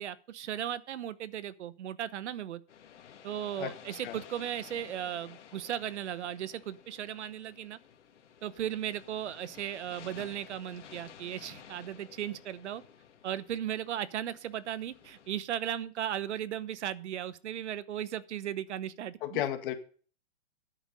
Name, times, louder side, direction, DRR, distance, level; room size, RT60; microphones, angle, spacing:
voice 1, 0.0-2.6 3.2-7.8 8.4-12.8 13.2-19.4, right 10 dB, 75° right, 17 dB, 1.0 m, -36 dB
sound 1, 2.7-15.3, left 8 dB, 90° left, 2.2 m, -53 dB
voice 2, 19.2-19.7, left 12 dB, 50° left, 6 dB, 1.9 m, -33 dB
10.0 x 8.5 x 5.4 m, 0.42 s
hypercardioid pair, 150°, 35 cm